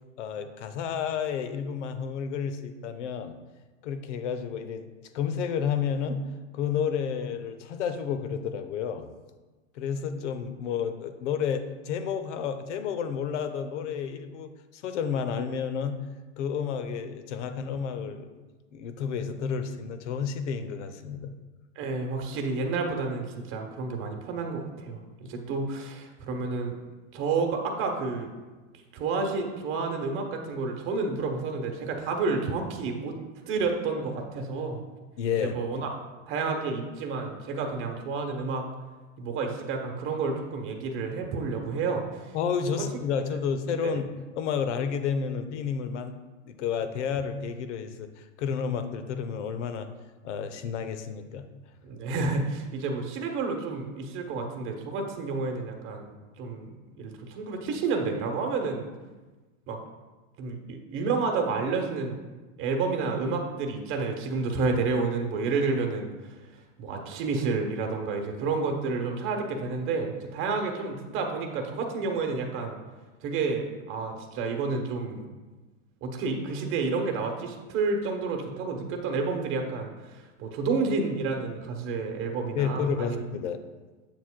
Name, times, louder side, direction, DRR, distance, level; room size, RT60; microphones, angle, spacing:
voice 1, 0.2-3.3 3.8-4.8 5.1-6.2 6.5-9.1 9.7-16.0 16.4-18.3 18.7-21.3 35.2-35.6 42.3-46.1 46.4-49.9 50.2-51.5 82.5-83.6, left 7 dB, 65° left, 9 dB, 0.8 m, -31 dB
voice 2, 21.8-26.8 27.1-28.3 28.9-33.2 33.5-34.8 35.4-35.9 36.3-38.7 39.2-42.2 42.7-42.8 43.8-44.0 51.8-56.7 57.0-58.9 59.7-59.8 60.4-62.2 62.6-66.3 66.8-72.8 73.2-75.2 76.0-83.2, right 4 dB, 35° right, 3 dB, 1.0 m, -30 dB
7.7 x 7.0 x 2.2 m, 1.3 s
hypercardioid pair, 125°, 38 cm